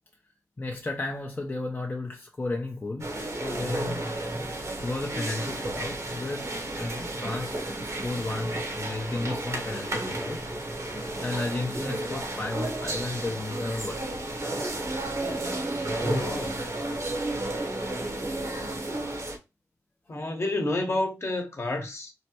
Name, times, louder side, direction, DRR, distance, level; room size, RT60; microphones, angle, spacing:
voice 1, 0.6-3.1 3.4-4.0 4.8-10.4 11.2-14.2, left 2 dB, 30° left, 0.6 m, -33 dB
sound 1, 3.0-19.4, right 1 dB, 60° right, 1.0 m, -32 dB
voice 2, 16.0-16.6 20.1-22.1, left 2 dB, 50° left, 1.0 m, -30 dB
3.2 x 2.1 x 2.8 m
cardioid pair, 50°, 6 cm